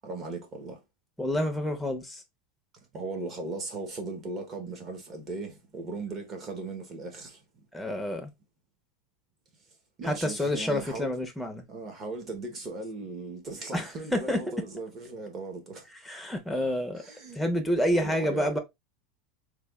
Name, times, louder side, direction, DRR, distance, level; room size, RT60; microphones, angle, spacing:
voice 1, 0.0-0.8 2.9-7.7 10.0-11.2 11.7-15.9 17.0-17.4 17.9-18.6, right 3 dB, 30° right, 1.1 m, -38 dB
voice 2, 1.2-2.2 7.7-8.3 10.0-11.6 13.7-14.4 16.0-17.0 17.3-18.6, left 1 dB, ahead, 0.7 m, -28 dB
3.3 x 2.3 x 3.5 m
supercardioid pair, 155°, 0 cm